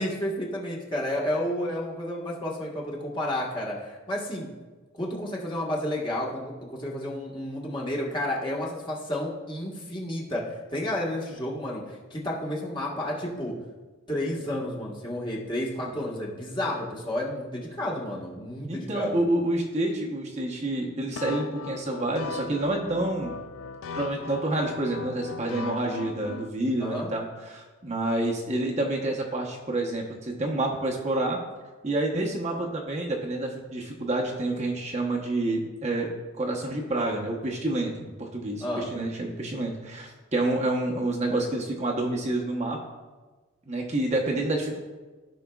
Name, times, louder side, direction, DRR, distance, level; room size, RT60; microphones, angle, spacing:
voice 1, 0.0-4.5 4.9-13.6 14.1-19.2 26.8-27.1 38.6-38.9, left 1 dB, 25° left, -4 dB, 1.4 m, -31 dB
voice 2, 18.7-23.3 23.9-31.4 31.8-36.1 36.4-42.8 43.7-44.8, right 2 dB, 35° right, -1 dB, 0.9 m, -28 dB
sound 1, 21.2-26.5, left 4 dB, 90° left, 0.4 m, -37 dB
15.0 x 5.5 x 2.3 m, 1.3 s
head